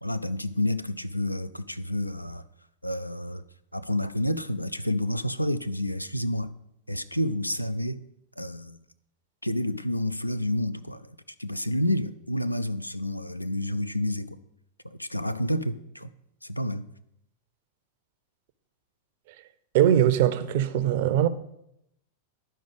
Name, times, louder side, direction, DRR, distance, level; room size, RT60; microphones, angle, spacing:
voice 1, 0.0-2.4 2.8-3.4 3.7-6.5 6.9-8.0 8.4-8.8 9.4-14.4 14.8-16.1 16.4-16.9, left 1 dB, 85° left, 0.4 m, -29 dB
voice 2, 19.7-21.3, right 11 dB, 50° right, 0.5 m, -21 dB
11.0 x 5.1 x 5.3 m
figure-of-eight pair, 90°, 0 cm